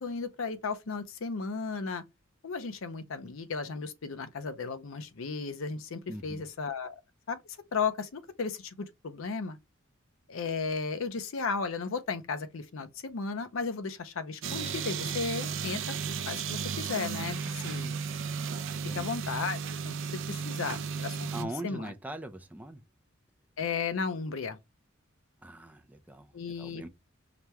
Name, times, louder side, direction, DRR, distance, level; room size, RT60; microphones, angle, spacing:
voice 1, 0.0-2.0 2.4-7.0 7.3-7.4 7.7-9.6 10.3-15.9 16.3-17.9 18.9-19.6 19.8-19.9 20.3-21.9 23.6-24.6 26.3-26.9, left 5 dB, 65° left, 0.6 m, -35 dB
voice 2, 6.1-6.4 18.9-19.2 21.3-22.8 25.4-26.9, right 1 dB, 10° right, 0.5 m, -41 dB
sound 1, 14.4-21.4, right 6 dB, 60° right, 0.5 m, -34 dB
5.0 x 2.2 x 2.9 m
head